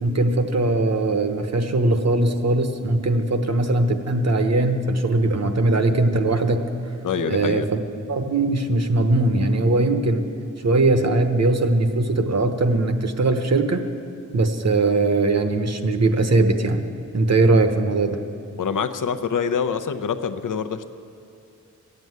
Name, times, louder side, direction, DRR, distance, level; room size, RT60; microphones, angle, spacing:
voice 1, 0.0-6.7 7.3-7.8 8.1-10.2 10.6-13.8 14.3-16.8 17.1-18.2, right 2 dB, 55° right, 7 dB, 1.0 m, -20 dB
voice 2, 7.0-7.7 18.6-20.9, left 6 dB, 75° left, 10 dB, 0.7 m, -25 dB
13.5 x 7.8 x 9.4 m, 2.6 s
wide cardioid pair, 105°, 32 cm